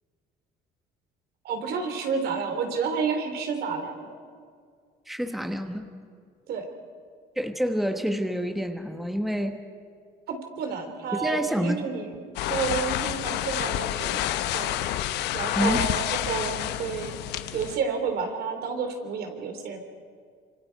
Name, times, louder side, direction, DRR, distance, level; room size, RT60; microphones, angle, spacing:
voice 1, 1.4-4.1 6.5-6.7 10.3-14.8 15.3-17.2 17.5-19.8, right 5 dB, 70° right, 5 dB, 3.2 m, -30 dB
voice 2, 5.1-5.9 7.4-9.6 11.1-11.8 15.5-15.9, equal, ahead, 6 dB, 1.3 m, -28 dB
sound 1, 12.4-17.8, left 12 dB, 85° left, 0.9 m, -29 dB
26.5 x 25.0 x 4.7 m, 2.1 s
cardioid pair, 110°, 17 cm